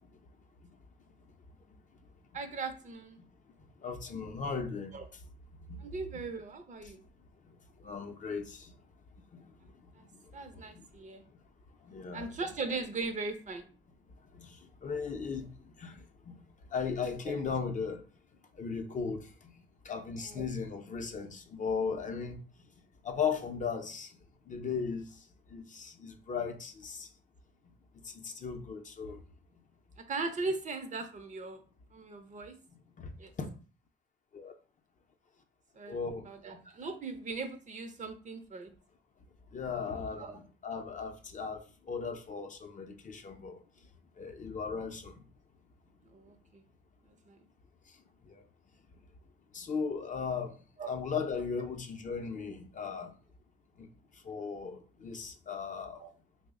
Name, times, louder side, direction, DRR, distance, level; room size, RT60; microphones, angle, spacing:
voice 1, 2.3-3.2 4.9-5.1 5.8-7.0 10.0-10.1 10.3-11.2 12.1-13.7 17.3-17.4 20.2-20.6 30.0-31.6 31.9-32.6 33.2-33.3 35.7-38.7 40.2-40.4 46.1-46.6 47.1-47.4 50.8-50.9 56.0-56.1, right 3 dB, 40° right, 0.5 m, -39 dB
voice 2, 3.8-4.9 5.7-5.8 7.4-8.7 9.3-10.9 11.8-12.3 14.3-16.4 16.7-18.0 18.5-22.4 23.0-24.2 24.5-27.1 28.0-29.2 33.0-33.5 34.3-34.5 35.9-36.6 39.5-43.6 44.2-45.2 48.3-48.4 49.5-50.6 50.9-53.1 53.8-53.9 54.1-56.0, left 5 dB, 40° left, 0.5 m, -37 dB
3.1 x 2.0 x 3.6 m
cardioid pair, 90°, 20 cm